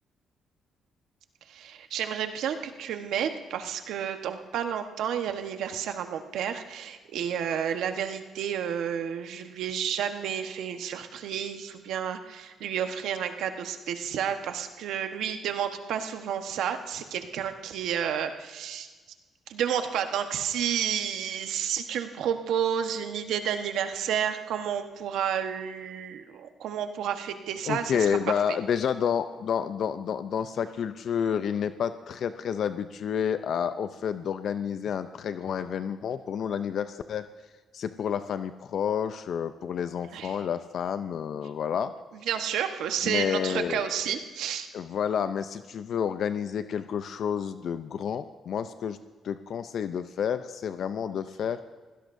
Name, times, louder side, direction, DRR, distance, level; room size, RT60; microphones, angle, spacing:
voice 1, 1.5-18.9 19.5-27.9 40.1-40.3 42.3-44.7, right 8 dB, 80° right, 7 dB, 1.2 m, -31 dB
voice 2, 27.7-37.3 37.7-41.9 43.0-44.2 44.7-49.0 49.2-51.6, left 8 dB, 65° left, 11 dB, 0.5 m, -30 dB
23.5 x 16.5 x 2.7 m, 1.3 s
cardioid pair, 90°, 0 cm